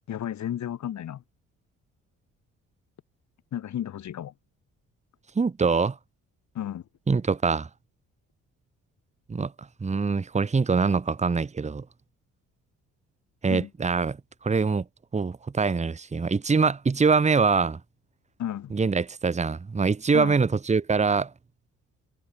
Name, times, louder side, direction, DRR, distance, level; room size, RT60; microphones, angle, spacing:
voice 1, 0.1-1.2 3.5-4.3 6.5-6.8 13.5-13.7 18.4-18.7 20.1-20.4, left 10 dB, 65° left, 5.7 m, -33 dB
voice 2, 5.3-6.0 7.1-7.7 9.3-9.5 9.8-11.8 13.4-14.2 14.4-14.8 15.1-17.8 18.7-21.3, right 4 dB, 25° right, 1.3 m, -24 dB
cardioid pair, 90°, 30 cm